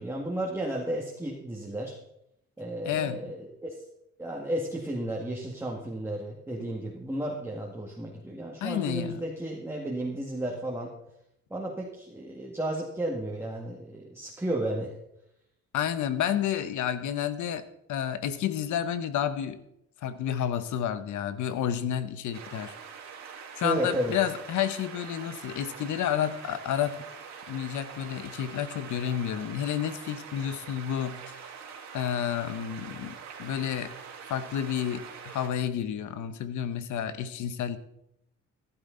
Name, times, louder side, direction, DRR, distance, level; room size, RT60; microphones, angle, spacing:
voice 1, 0.0-2.0 2.6-3.8 4.2-10.9 11.5-15.0 23.6-24.2, right 1 dB, 10° right, -2 dB, 2.0 m, -33 dB
voice 2, 2.8-3.3 8.6-9.2 15.7-19.6 20.0-22.7 23.6-27.0 27.5-31.5 31.9-33.9 34.3-37.8, left 9 dB, 80° left, 12 dB, 1.1 m, -30 dB
sound 1, 22.3-35.5, right 6 dB, 70° right, 3.1 m, -44 dB
14.5 x 12.0 x 3.9 m, 0.80 s
cardioid pair, 105°, 29 cm